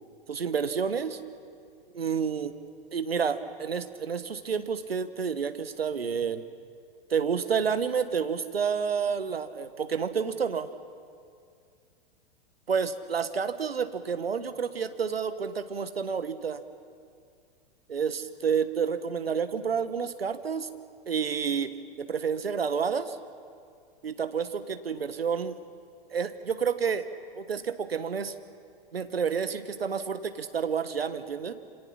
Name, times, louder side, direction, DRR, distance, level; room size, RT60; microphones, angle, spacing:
voice 1, 0.3-1.2 1.9-2.5 2.9-6.4 7.1-10.7 12.7-16.6 17.9-20.7 21.1-23.2 24.0-25.6 26.1-27.1 27.3-28.3 28.9-31.5, right 6 dB, 70° right, 11 dB, 1.4 m, -29 dB
27.5 x 26.5 x 5.8 m, 2.2 s
figure-of-eight pair, 105°, 31 cm